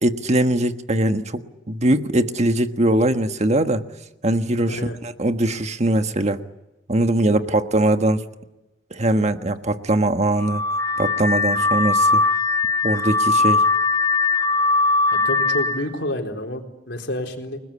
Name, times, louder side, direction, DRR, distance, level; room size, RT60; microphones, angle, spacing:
voice 1, 0.0-3.8 4.2-6.4 6.9-8.2 8.9-10.6 11.0-12.2 12.8-13.6, right 1 dB, 40° right, 8 dB, 1.4 m, -21 dB
voice 2, 4.6-5.0 7.3-7.5 15.1-17.6, left 1 dB, 80° left, 3 dB, 4.2 m, -29 dB
Car / Alarm, 10.4-15.8, left 3 dB, 20° left, 1.7 m, -20 dB
30.0 x 20.0 x 8.6 m, 1.0 s
head